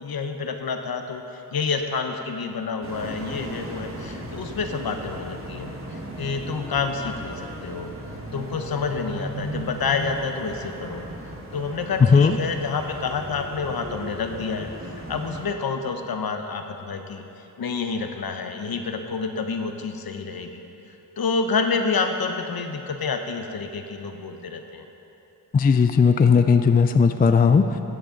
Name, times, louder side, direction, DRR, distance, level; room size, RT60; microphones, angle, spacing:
voice 1, 0.0-7.9 8.3-11.0 11.5-14.7 15.1-17.2 17.6-20.6 20.9-24.8, left 4 dB, 60° left, 6 dB, 0.9 m, -28 dB
sound 1, 2.8-15.5, right 1 dB, 30° right, 1.7 m, -37 dB
voice 2, 25.5-27.8, left 5 dB, 25° left, 9 dB, 0.4 m, -17 dB
14.0 x 7.9 x 3.9 m, 3.0 s
cardioid pair, 65°, 41 cm